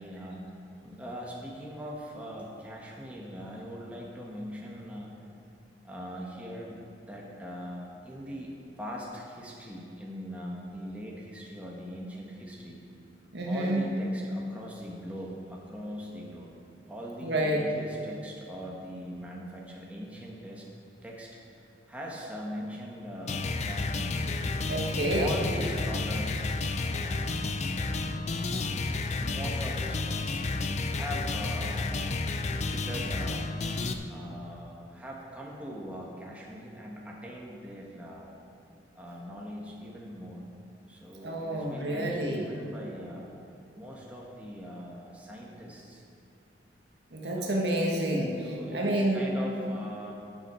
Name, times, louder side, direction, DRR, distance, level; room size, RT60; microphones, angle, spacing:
voice 1, 0.0-5.2 5.8-8.5 8.8-12.8 13.5-16.5 16.9-20.7 21.0-24.5 25.2-30.4 30.9-33.5 34.1-38.3 38.9-40.4 40.9-43.3 43.7-46.0 47.2-47.7 48.4-50.1, equal, 10° right, -3 dB, 1.3 m, -41 dB
voice 2, 13.3-13.8 17.2-17.6 24.7-25.3 41.2-42.5 47.1-48.4 48.7-49.2, right 1 dB, 65° right, -1 dB, 1.5 m, -28 dB
sound 1, 23.3-33.9, left 3 dB, 35° left, 0.5 m, -31 dB
13.0 x 8.4 x 4.5 m, 2.6 s
head